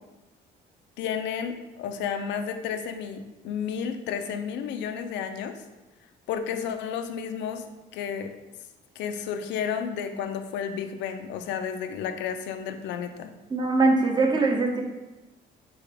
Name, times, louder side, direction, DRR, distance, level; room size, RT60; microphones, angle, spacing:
voice 1, 1.0-5.6 6.3-7.6 7.9-8.3 9.0-13.3, left 7 dB, 85° left, 7 dB, 0.5 m, -32 dB
voice 2, 13.5-14.8, right 3 dB, 25° right, 1 dB, 0.8 m, -22 dB
4.0 x 3.5 x 3.4 m, 1.0 s
cardioid pair, 105°, 18 cm